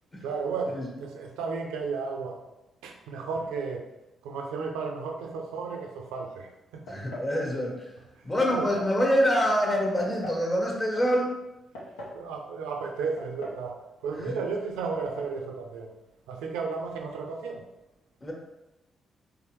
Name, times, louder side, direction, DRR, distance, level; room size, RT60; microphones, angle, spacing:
voice 1, 0.2-2.4 2.8-3.9 4.2-6.8 8.5-8.7 12.1-13.8 14.0-15.9 16.3-17.6, right 4 dB, 80° right, 2 dB, 0.5 m, -33 dB
sound 1, 6.9-7.4 8.5-9.0 10.0-10.5 11.5-12.2 13.2-13.7 13.9-14.0 14.9-15.3, equal, 85° left, 0.7 m, -40 dB
voice 2, 6.9-7.8 8.2-11.3 14.3-14.4 18.2-18.3, equal, 35° left, -1 dB, 1.3 m, -25 dB
3.6 x 3.2 x 3.1 m, 0.96 s
hypercardioid pair, 45°, 0 cm